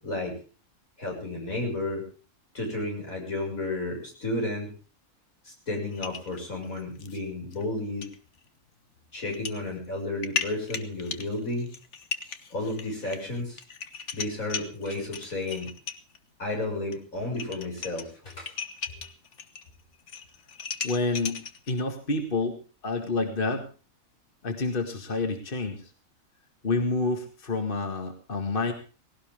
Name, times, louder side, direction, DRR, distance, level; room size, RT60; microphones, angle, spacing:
voice 1, 0.0-0.4 1.0-2.0 2.5-4.7 5.4-8.1 9.1-11.7 12.5-13.6 14.1-15.7 16.4-18.5 18.9-19.0, left 2 dB, 80° left, 1 dB, 7.2 m, -32 dB
sound 1, 5.9-7.2 7.5-7.6 8.0-8.2 9.2-9.6 10.0-16.2 16.9-17.0 17.3-19.7 19.9-21.8, left 6 dB, 60° left, 1.5 m, -37 dB
voice 2, 20.8-22.6 22.8-23.7 24.4-25.8 26.6-28.7, left 3 dB, 40° left, 5 dB, 2.1 m, -28 dB
19.0 x 17.5 x 3.6 m, 0.37 s
omnidirectional pair, 1.4 m